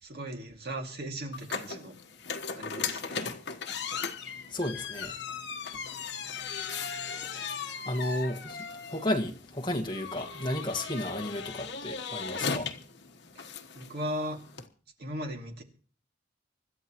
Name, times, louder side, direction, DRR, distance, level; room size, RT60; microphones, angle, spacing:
voice 1, 0.0-2.0 2.6-3.2 12.3-12.4 13.3-13.5 13.7-14.4 15.0-15.6, right 1 dB, 55° right, 2.4 m, -37 dB
sound 1, 1.3-14.7, left 5 dB, 65° left, 1.3 m, -37 dB
voice 2, 4.5-5.2 7.3-7.6 7.9-8.6 8.9-12.7, left 1 dB, 25° left, 1.8 m, -33 dB
25.5 x 12.5 x 3.1 m
head